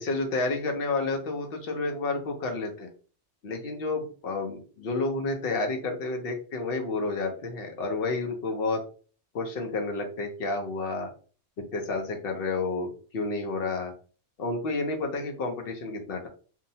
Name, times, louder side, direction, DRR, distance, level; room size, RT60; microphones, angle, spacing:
voice 1, 0.0-2.9 3.4-8.8 9.3-11.1 11.7-13.9 14.4-16.3, left 3 dB, 60° left, 3 dB, 0.7 m, -30 dB
2.7 x 2.0 x 2.7 m, 0.40 s
omnidirectional pair, 1.3 m